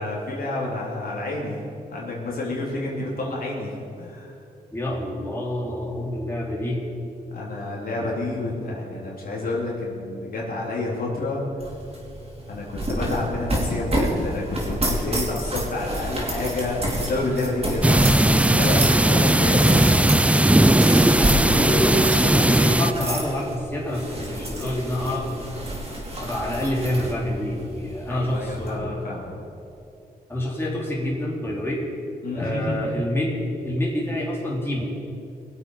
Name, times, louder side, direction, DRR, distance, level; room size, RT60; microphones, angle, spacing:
voice 1, 0.0-1.6 1.9-4.3 7.3-11.4 12.5-17.8 18.5-19.9 28.1-29.2 32.2-32.7, left 2 dB, 60° left, -4 dB, 3.6 m, -29 dB
voice 2, 4.7-6.8 21.2-25.4 26.2-29.1 30.3-31.9 32.4-33.4 33.6-34.9, left 1 dB, 15° left, -4 dB, 3.5 m, -27 dB
sound 1, 11.6-28.8, right 1 dB, 35° right, 4.1 m, -30 dB
sound 2, 17.8-22.9, right 1 dB, 10° right, 0.5 m, -17 dB
21.5 x 8.1 x 5.6 m, 2.6 s
cardioid pair, 75°, 17 cm